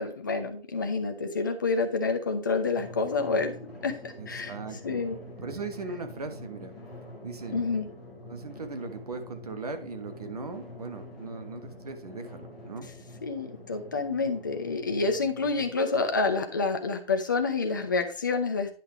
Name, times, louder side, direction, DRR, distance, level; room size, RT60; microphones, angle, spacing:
voice 1, 0.0-4.5 4.8-5.2 7.5-7.9 13.2-18.7, left 4 dB, 20° left, 6 dB, 0.7 m, -28 dB
Drum, 2.8-15.7, left 2 dB, ahead, 1.1 m, -46 dB
voice 2, 4.2-5.0 5.4-6.7 7.2-7.6 8.3-12.9, right 4 dB, 40° right, 7 dB, 1.3 m, -38 dB
10.0 x 5.5 x 3.1 m, 0.39 s
figure-of-eight pair, 155°, 30 cm